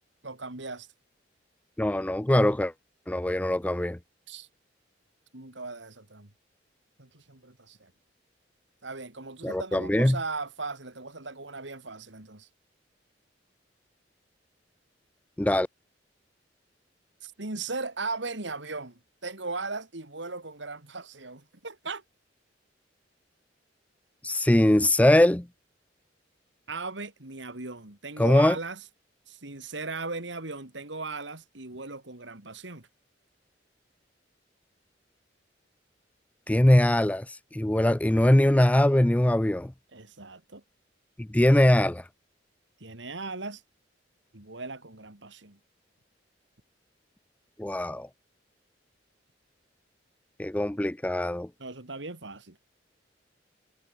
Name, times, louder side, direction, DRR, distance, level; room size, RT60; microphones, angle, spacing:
voice 1, 0.2-0.9 4.3-4.5 5.3-6.3 7.0-7.9 8.8-12.5 17.2-22.0 26.7-28.8 29.3-32.9 39.9-40.6 42.8-43.6 44.3-45.6 51.6-52.6, right 3 dB, 75° right, 2.9 m, -38 dB
voice 2, 1.8-2.7 3.1-4.0 9.4-10.2 15.4-15.7 24.2-25.5 28.2-28.6 36.5-39.7 41.2-42.0 47.6-48.1 50.4-51.5, left 1 dB, 10° left, 0.4 m, -22 dB
head